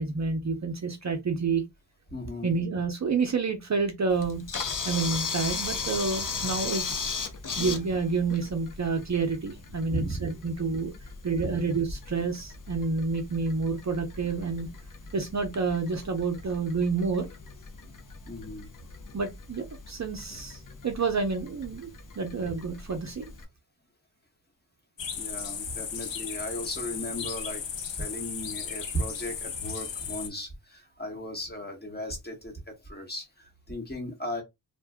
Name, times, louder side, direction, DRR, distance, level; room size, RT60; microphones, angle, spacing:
voice 1, 0.0-1.6 2.4-4.4 4.8-7.1 7.6-14.7 15.1-17.3 19.1-21.9 22.2-23.3, right 4 dB, 40° right, 0.6 m, -29 dB
voice 2, 2.1-2.5 9.9-10.2 11.4-11.6 18.2-18.7 25.2-34.4, equal, 20° left, 1.0 m, -36 dB
Camera, 4.1-23.4, left 5 dB, 50° left, 0.6 m, -38 dB
sound 1, 25.0-30.3, left 6 dB, 85° left, 0.7 m, -35 dB
2.6 x 2.2 x 3.4 m
wide cardioid pair, 140°, 43 cm